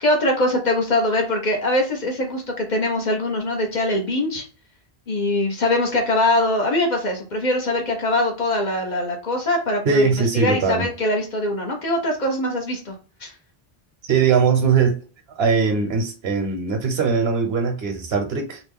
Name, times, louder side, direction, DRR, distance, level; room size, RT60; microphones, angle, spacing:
voice 1, 0.0-4.4 5.1-10.0 10.3-12.9 13.2-13.3, left 1 dB, 50° left, 0.9 m, -22 dB
voice 2, 9.8-10.9 14.1-15.0 15.4-18.6, right 5 dB, 75° right, 1.0 m, -20 dB
2.9 x 2.2 x 3.5 m
omnidirectional pair, 1.1 m